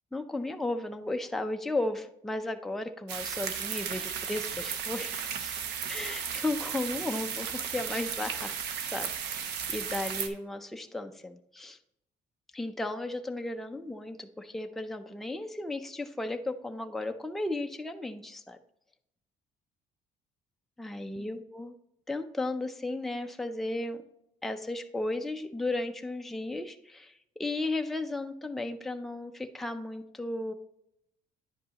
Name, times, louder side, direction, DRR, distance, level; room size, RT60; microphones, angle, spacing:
voice 1, 0.1-5.5 5.9-8.5 8.9-11.8 12.5-18.6 20.8-21.7 22.1-24.0 24.4-27.1 27.4-30.5, left 2 dB, ahead, 5 dB, 0.5 m, -35 dB
sound 1, 3.1-10.3, right 7 dB, 80° right, 0.8 m, -35 dB
10.0 x 5.2 x 2.9 m, 0.80 s
cardioid pair, 110°, 17 cm